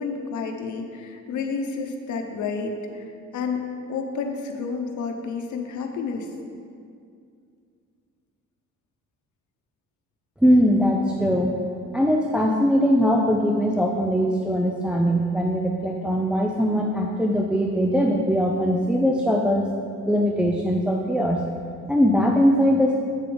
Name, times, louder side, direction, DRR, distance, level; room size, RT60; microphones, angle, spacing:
voice 1, 0.0-6.3, left 4 dB, 75° left, 4 dB, 1.0 m, -30 dB
voice 2, 10.4-11.6 11.9-19.7 20.1-21.4 21.9-22.9, equal, 5° right, 0 dB, 0.5 m, -21 dB
8.2 x 6.6 x 3.9 m, 2.3 s
cardioid pair, 90°, 30 cm